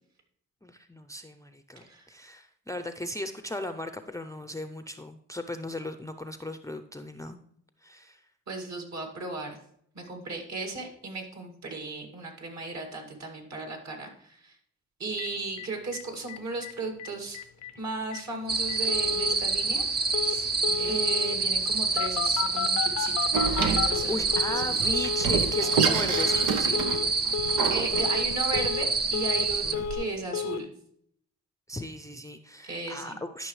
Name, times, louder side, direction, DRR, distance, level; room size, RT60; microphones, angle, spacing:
voice 1, 0.6-7.4 7.8-8.2 17.7-17.8 20.7-21.0 23.7-26.8 29.6-29.9 31.7-33.5, left 1 dB, 10° left, 8 dB, 0.5 m, -37 dB
voice 2, 1.8-2.1 8.5-9.6 9.9-14.6 15.0-17.4 17.8-23.3 23.6-25.1 27.7-30.7 32.6-33.2, right 3 dB, 55° right, 3 dB, 2.2 m, -36 dB
Telephone, 15.2-15.3 15.6-15.7 15.9-16.0 16.3-16.7 17.0-17.1 17.3-17.7 18.1-18.2 18.7-19.4 20.1-20.4 20.6-21.4 22.0-24.7 24.9-25.3 25.5-25.9 26.1-26.5 26.7-27.1 27.3-27.7 27.9-28.3 28.5-29.5 29.7-30.1 30.3-30.6, left 8 dB, 55° left, 0.5 m, -32 dB
sound 1, 18.5-29.8, right 4 dB, 30° right, 0.6 m, -27 dB
Door, 23.3-29.9, right 6 dB, 85° right, 0.8 m, -30 dB
12.0 x 5.6 x 3.2 m, 0.68 s
cardioid pair, 70°, 32 cm